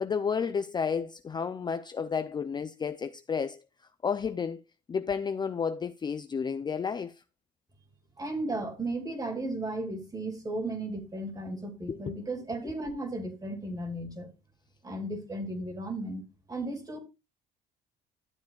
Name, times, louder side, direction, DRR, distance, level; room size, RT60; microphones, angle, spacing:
voice 1, 0.0-3.6 4.0-4.6 4.9-7.1 11.9-12.2, left 6 dB, 25° left, 0.4 m, -31 dB
voice 2, 8.2-14.3 14.8-16.2 16.5-17.0, right 2 dB, 20° right, 2.6 m, -35 dB
13.0 x 7.3 x 2.3 m
cardioid pair, 110°, 17 cm